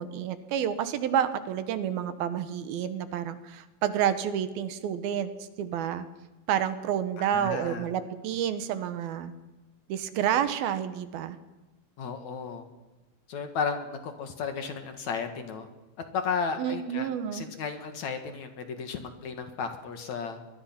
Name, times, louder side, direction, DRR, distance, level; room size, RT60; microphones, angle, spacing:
voice 1, 0.0-5.3 5.6-6.0 6.5-9.3 9.9-11.4 16.6-17.5, right 9 dB, 80° right, 11 dB, 3.0 m, -29 dB
voice 2, 7.2-7.9 12.0-12.7 13.3-15.7 16.1-20.4, left 5 dB, 55° left, 7 dB, 2.7 m, -34 dB
24.0 x 21.5 x 5.9 m, 1.1 s
omnidirectional pair, 4.3 m